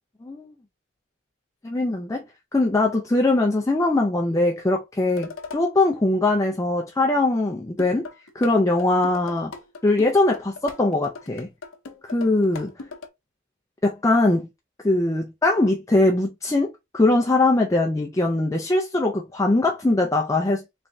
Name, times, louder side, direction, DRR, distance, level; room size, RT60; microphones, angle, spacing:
voice 1, 0.2-0.5 1.6-2.2 2.5-8.1 8.3-9.5 9.8-11.5 12.1-12.7 13.8-14.5 14.8-20.6, left 2 dB, 15° left, 0.4 m, -21 dB
sound 1, 5.1-5.6 7.8-8.5 8.8-13.1, left 4 dB, 75° left, 0.7 m, -39 dB
3.5 x 3.2 x 2.6 m
head